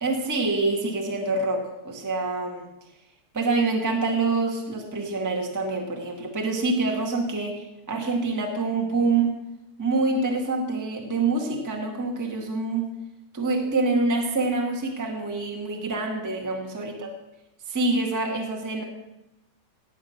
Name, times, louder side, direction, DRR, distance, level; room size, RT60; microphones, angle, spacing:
voice 1, 0.0-2.7 3.3-9.4 9.8-12.8 13.3-17.1 17.7-18.8, right 3 dB, 10° right, 1 dB, 1.2 m, -26 dB
17.5 x 8.4 x 5.9 m, 0.93 s
omnidirectional pair, 3.5 m